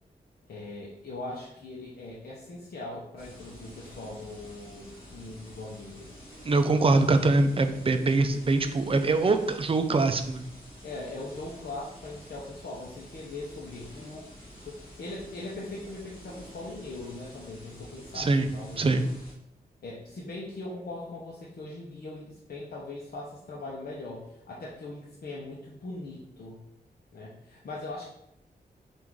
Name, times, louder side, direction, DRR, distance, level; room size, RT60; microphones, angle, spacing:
voice 1, 0.5-6.1 10.8-14.3 14.6-19.0 19.8-26.6 27.1-28.0, left 2 dB, 65° left, -5 dB, 0.8 m, -40 dB
sound 1, 3.2-19.3, equal, 30° left, 1.5 m, -49 dB
voice 2, 6.4-10.5 18.1-18.5 18.8-19.1, right 3 dB, 35° right, 7 dB, 0.4 m, -23 dB
3.6 x 2.6 x 4.6 m, 0.81 s
wide cardioid pair, 75°, 17 cm